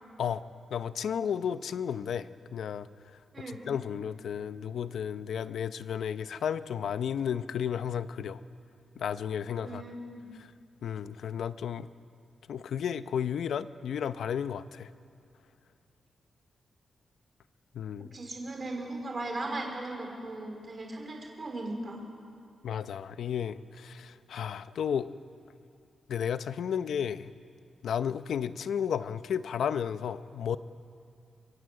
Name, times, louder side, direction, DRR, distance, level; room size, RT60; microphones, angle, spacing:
voice 1, 0.7-2.9 3.7-8.4 9.0-9.8 10.8-11.9 12.5-14.9 17.7-18.1 22.6-25.1 26.1-27.3 27.8-30.6, left 8 dB, 75° left, 13 dB, 0.7 m, -33 dB
voice 2, 3.3-3.6 9.6-10.3 18.1-22.0, right 2 dB, 30° right, 2 dB, 4.4 m, -37 dB
25.5 x 23.0 x 7.8 m, 2.4 s
wide cardioid pair, 155°, 0 cm